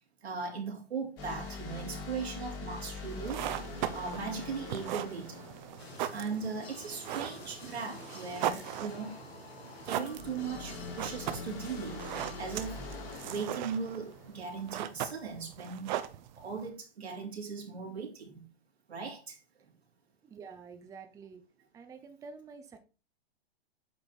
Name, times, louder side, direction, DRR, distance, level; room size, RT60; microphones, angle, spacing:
voice 1, 0.2-3.4 3.9-5.5 6.1-9.1 9.8-12.8 13.2-16.0 16.3-18.5 18.9-19.4, right 5 dB, 80° right, 2.7 m, -38 dB
sound 1, 1.2-6.6 10.1-14.9, left 3 dB, 60° left, 3.0 m, -44 dB
sound 2, 3.1-16.7, right 11 dB, 45° right, 0.8 m, -39 dB
sound 3, 5.8-13.2, left 4 dB, 75° left, 2.0 m, -49 dB
voice 2, 20.2-21.5 21.7-22.8, right 5 dB, 10° right, 0.6 m, -48 dB
8.1 x 3.9 x 4.4 m
hypercardioid pair, 120°, 31 cm